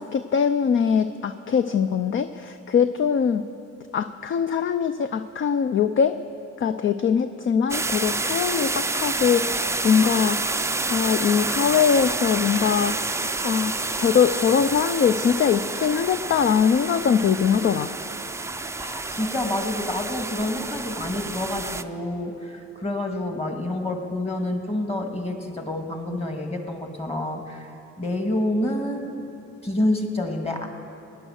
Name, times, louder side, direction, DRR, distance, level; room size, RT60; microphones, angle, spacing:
voice 1, 0.0-3.5 3.9-6.2 6.6-10.4 10.9-17.9, left 7 dB, 40° left, 10 dB, 0.5 m, -22 dB
sound 1, 7.7-21.8, right 3 dB, 10° right, 0.4 m, -28 dB
voice 2, 18.8-27.7 28.0-29.3 29.6-30.7, left 1 dB, 20° left, 4 dB, 1.9 m, -28 dB
17.5 x 10.0 x 6.4 m, 2.7 s
cardioid pair, 90°, 30 cm